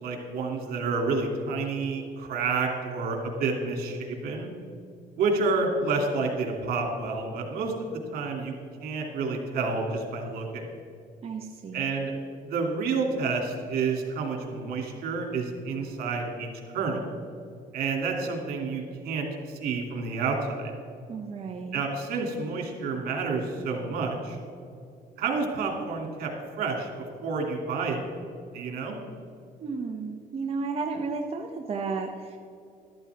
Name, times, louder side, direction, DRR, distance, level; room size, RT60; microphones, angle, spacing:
voice 1, 0.0-4.5 5.2-8.5 8.8-10.7 11.7-12.1 12.5-16.5 16.7-17.1 17.7-20.7 21.7-24.4 25.2-26.3 26.6-26.9 27.2-28.0 28.5-29.0, right 4 dB, 75° right, 1 dB, 2.6 m, -29 dB
voice 2, 11.2-11.8 21.1-21.8 29.6-32.4, right 4 dB, 40° right, 2 dB, 0.9 m, -33 dB
13.5 x 12.5 x 3.5 m, 2.5 s
cardioid pair, 130°, 16 cm